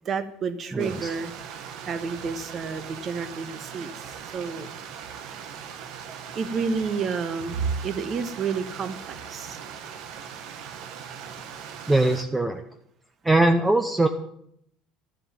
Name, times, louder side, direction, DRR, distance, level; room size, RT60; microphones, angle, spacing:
voice 1, 0.0-1.3 1.8-4.7 6.1-9.6, right 5 dB, 35° right, 11 dB, 1.4 m, -30 dB
voice 2, 0.7-1.1 11.9-12.6 13.2-14.1, right 2 dB, 10° right, 7 dB, 0.9 m, -21 dB
Stream, 0.8-12.2, right 7 dB, 60° right, 1.6 m, -40 dB
13.0 x 7.5 x 9.1 m, 0.70 s
cardioid pair, 135°, 0 cm